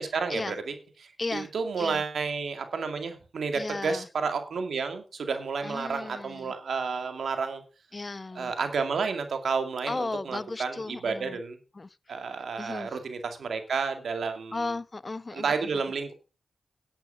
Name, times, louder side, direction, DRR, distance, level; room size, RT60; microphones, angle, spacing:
voice 1, 0.0-7.6 8.3-11.6 12.1-14.7 15.3-16.1, right 5 dB, 80° right, 2.2 m, -31 dB
voice 2, 1.2-1.5 1.8-2.0 3.5-4.0 5.6-6.5 7.9-8.5 9.9-11.4 11.8-11.9 12.6-12.9 14.5-15.4, left 3 dB, 40° left, 0.5 m, -35 dB
10.5 x 8.6 x 5.5 m
cardioid pair, 55°, 0 cm